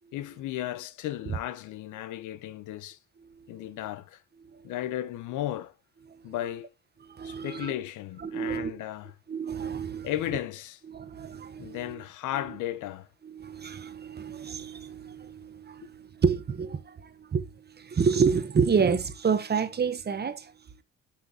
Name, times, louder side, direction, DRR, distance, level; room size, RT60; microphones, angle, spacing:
voice 1, 0.1-3.0 3.5-4.2 4.6-5.7 6.2-6.7 7.2-9.1 10.0-10.8 11.6-13.1 15.8-15.9, left 13 dB, 85° left, 0.7 m, -35 dB
voice 2, 7.0-7.7 8.2-8.8 9.3-10.1 10.9-12.0 13.2-20.5, right 6 dB, 35° right, 0.8 m, -29 dB
6.1 x 5.7 x 2.8 m
cardioid pair, 90°, 30 cm